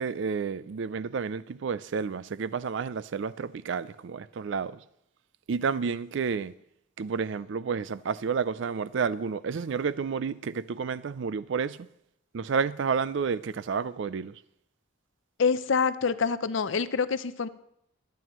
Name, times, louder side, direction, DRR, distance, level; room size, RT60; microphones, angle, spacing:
voice 1, 0.0-4.8 5.5-6.5 7.0-11.9 12.3-14.4, right 5 dB, 65° right, 0.4 m, -30 dB
voice 2, 15.4-17.5, left 5 dB, 70° left, 0.6 m, -26 dB
23.0 x 9.2 x 3.0 m
head